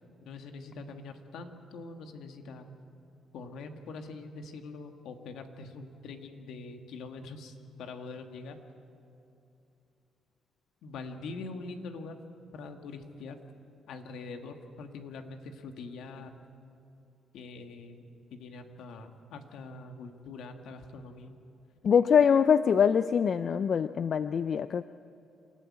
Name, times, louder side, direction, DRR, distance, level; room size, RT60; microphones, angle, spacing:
voice 1, 0.2-2.7 3.3-8.6 10.8-12.2 12.5-13.4 13.9-16.3 17.3-18.1 18.3-21.3, left 3 dB, 80° left, 5 dB, 1.8 m, -43 dB
voice 2, 21.8-24.8, left 7 dB, 55° left, 13 dB, 0.4 m, -24 dB
27.0 x 13.5 x 8.6 m, 2.7 s
cardioid pair, 90°, 0 cm